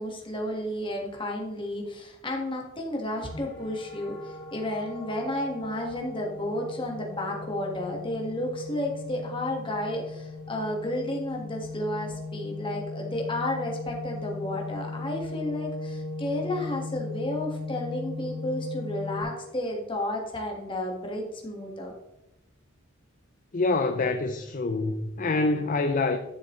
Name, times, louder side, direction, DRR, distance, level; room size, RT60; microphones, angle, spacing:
voice 1, 0.0-21.9, left 1 dB, 25° left, 1.8 m, -32 dB
sound 1, 3.2-19.2, left 3 dB, 60° left, 3.1 m, -38 dB
voice 2, 23.5-26.2, left 3 dB, 40° left, 0.5 m, -26 dB
11.5 x 6.6 x 3.2 m
head